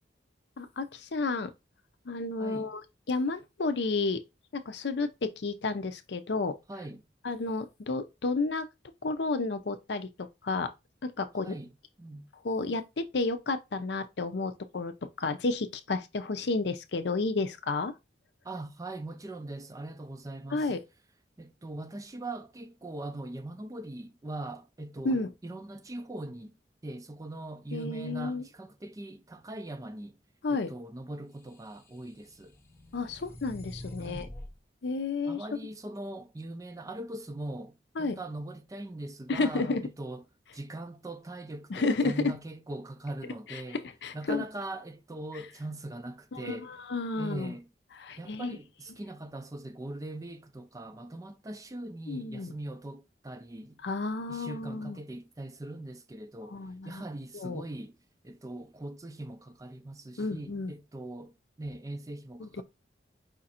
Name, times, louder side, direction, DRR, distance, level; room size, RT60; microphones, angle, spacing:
voice 1, 0.6-1.5 2.1-2.8 3.1-4.2 4.5-6.6 7.2-8.7 9.0-10.7 11.0-11.5 12.4-17.9 20.5-20.8 25.0-25.3 27.7-28.4 30.4-30.7 32.9-34.3 34.8-35.4 38.0-38.2 39.3-39.8 41.7-42.4 43.7-44.4 46.3-47.5 48.0-48.6 52.1-52.5 53.8-55.0 56.5-57.0 57.3-57.6 60.2-60.7 62.4-62.6, left 3 dB, 65° left, 0.6 m, -31 dB
voice 2, 2.4-2.7 6.7-7.0 11.4-11.7 12.0-12.3 18.4-20.7 21.4-26.6 26.8-30.2 30.5-32.6 34.0-34.3 35.2-40.2 40.5-43.8 44.1-46.7 47.2-47.7 48.2-53.8 54.3-58.0 58.2-62.6, right 2 dB, 20° right, 0.4 m, -41 dB
sound 1, 31.6-34.5, left 1 dB, 15° left, 0.8 m, -45 dB
5.0 x 2.5 x 4.2 m
head